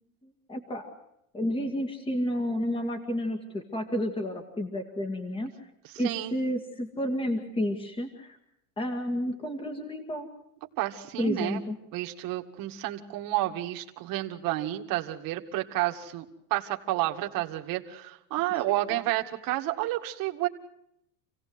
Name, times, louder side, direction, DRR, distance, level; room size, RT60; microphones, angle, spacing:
voice 1, 0.5-0.9 1.3-5.7 6.0-8.4 8.8-10.3 11.2-11.8, equal, 10° left, 5 dB, 1.9 m, -31 dB
voice 2, 5.9-6.3 10.8-11.6 11.9-16.2 16.5-20.5, right 16 dB, 50° right, 3 dB, 2.3 m, -30 dB
28.0 x 17.0 x 8.0 m, 0.81 s
supercardioid pair, 150°, 45 cm